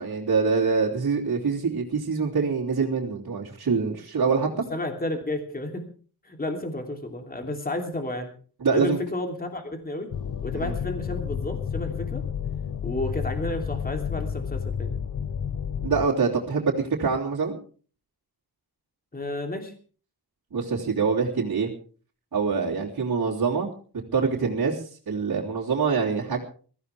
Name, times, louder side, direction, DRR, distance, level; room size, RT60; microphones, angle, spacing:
voice 1, 0.0-4.6 8.6-9.0 10.6-10.7 15.8-17.6 20.5-21.7 22.3-23.7 24.1-26.4, right 5 dB, 60° right, -6 dB, 3.2 m, -25 dB
voice 2, 4.7-5.9 6.2-8.3 8.7-10.1 10.4-12.3 12.8-15.0 19.1-19.7, left 1 dB, 25° left, 4 dB, 3.0 m, -31 dB
sound 1, 10.1-16.1, left 8 dB, 55° left, 0.7 m, -31 dB
22.5 x 15.0 x 3.4 m, 0.41 s
wide cardioid pair, 140°, 38 cm